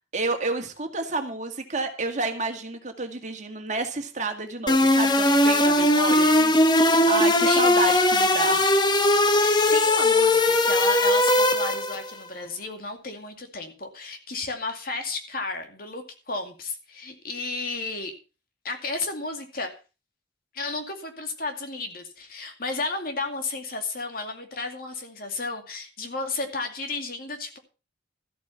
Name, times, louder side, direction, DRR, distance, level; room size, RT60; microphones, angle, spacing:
voice 1, 0.1-8.6, right 3 dB, 40° right, 5 dB, 2.1 m, -30 dB
sound 1, 4.7-12.1, left 1 dB, 25° left, 1.0 m, -19 dB
voice 2, 7.4-7.8 9.4-18.1 18.6-19.7 20.5-27.6, left 3 dB, 50° left, 5 dB, 2.4 m, -33 dB
13.5 x 8.5 x 5.7 m, 0.33 s
head